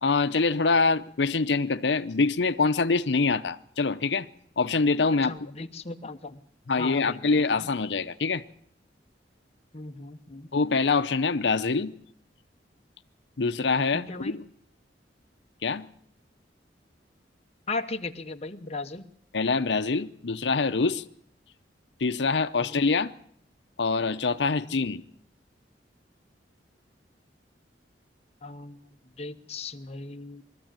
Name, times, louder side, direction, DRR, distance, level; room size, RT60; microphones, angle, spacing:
voice 1, 0.0-4.3 4.6-5.4 6.7-8.4 10.5-11.9 13.4-14.4 15.6-15.9 19.3-21.0 22.0-23.1 23.8-25.0, left 4 dB, 75° left, 0.7 m, -25 dB
voice 2, 5.2-6.4 6.8-7.7 9.7-10.5 13.9-14.4 17.7-19.1 22.6-22.8 24.5-24.8 28.4-28.8 29.2-30.4, left 3 dB, 35° left, 0.9 m, -37 dB
21.0 x 14.0 x 8.9 m
head